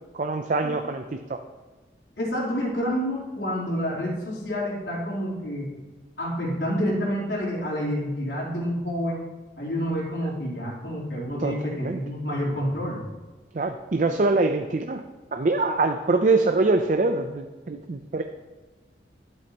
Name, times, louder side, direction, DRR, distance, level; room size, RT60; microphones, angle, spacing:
voice 1, 0.1-1.0 1.3-1.4 11.4-12.0 13.5-15.0 15.3-18.2, right 3 dB, 45° right, 6 dB, 0.5 m, -24 dB
voice 2, 2.2-5.7 6.2-9.3 9.6-13.0, equal, 85° left, -6 dB, 3.3 m, -28 dB
12.0 x 8.6 x 2.9 m, 1.3 s
head